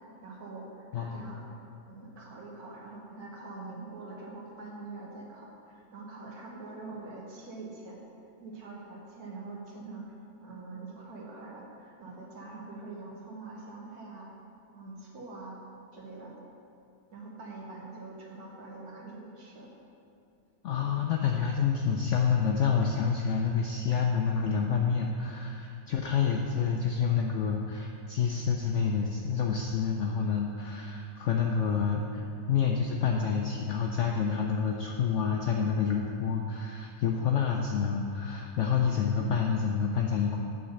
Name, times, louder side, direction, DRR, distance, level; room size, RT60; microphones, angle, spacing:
voice 1, 0.2-1.5 1.9-8.0 8.4-10.2 10.4-14.3 14.7-15.6 15.9-16.4 17.1-19.7, right 3 dB, 65° right, -3 dB, 1.8 m, -44 dB
voice 2, 0.9-1.3 20.6-40.4, left 6 dB, 75° left, 1 dB, 0.7 m, -28 dB
8.7 x 4.0 x 6.5 m, 2.5 s
omnidirectional pair, 1.8 m